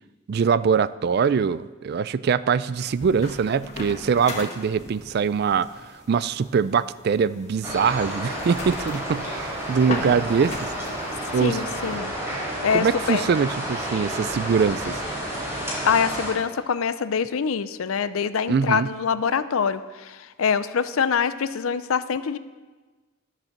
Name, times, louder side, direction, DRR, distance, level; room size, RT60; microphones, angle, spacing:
voice 1, 0.3-5.7 6.1-10.7 11.3-11.6 12.7-15.0 18.5-18.9, right 6 dB, 50° right, 16 dB, 0.3 m, -23 dB
sound 1, 2.8-12.0, left 2 dB, 35° left, 1.7 m, -38 dB
sound 2, 7.6-16.3, equal, 10° right, 3.5 m, -31 dB
voice 2, 11.4-12.1 12.6-13.3 15.8-22.4, left 6 dB, 85° left, 14 dB, 0.5 m, -24 dB
12.0 x 7.4 x 6.5 m, 1.3 s
head